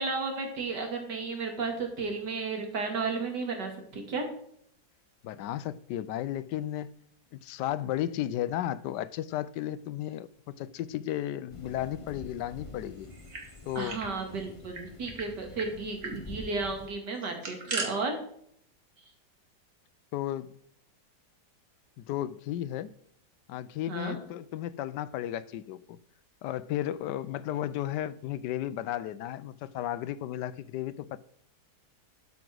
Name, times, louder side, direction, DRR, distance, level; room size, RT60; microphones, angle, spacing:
voice 1, 0.0-4.3 13.7-18.2 19.0-19.1 23.9-24.2, right 4 dB, 80° right, 2.8 m, -33 dB
voice 2, 5.2-6.9 7.3-13.1 13.7-14.0 20.1-20.5 22.0-22.9 23.5-26.0 26.4-31.2, left 12 dB, 85° left, 1.2 m, -34 dB
sound 1, 11.5-16.9, left 3 dB, 25° left, 0.8 m, -47 dB
sound 2, 13.0-14.1 14.4-14.5 14.7-15.3 15.6-15.7 16.0-16.2 17.2-17.9, right 3 dB, 60° right, 2.4 m, -37 dB
12.5 x 6.0 x 6.2 m
omnidirectional pair, 1.8 m